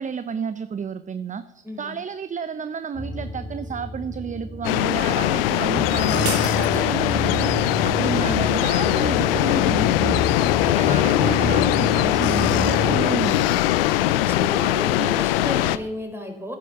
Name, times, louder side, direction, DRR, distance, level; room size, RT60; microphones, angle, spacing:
voice 1, 0.0-13.6, right 6 dB, 25° right, 13 dB, 0.8 m, -31 dB
sound 1, 2.9-13.0, left 1 dB, 50° left, 3.0 m, -29 dB
sound 2, 4.6-15.8, left 15 dB, 75° left, 0.6 m, -21 dB
sound 3, 6.2-7.5, right 5 dB, 55° right, 3.5 m, -32 dB
voice 2, 14.0-16.6, equal, 10° right, 3 dB, 4.7 m, -32 dB
13.5 x 10.0 x 6.9 m, 0.91 s
figure-of-eight pair, 55°, 29 cm